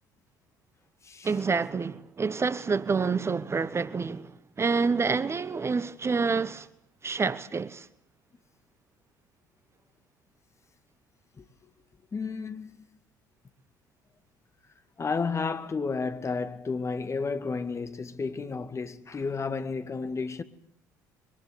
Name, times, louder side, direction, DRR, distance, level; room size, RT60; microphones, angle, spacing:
voice 1, 1.2-4.3 4.6-6.7 7.0-7.9, right 4 dB, 25° right, 1.2 m, -27 dB
voice 2, 12.1-12.7 15.0-20.4, left 4 dB, 30° left, 2.2 m, -32 dB
24.5 x 22.0 x 8.4 m
hypercardioid pair, 60°, 10 cm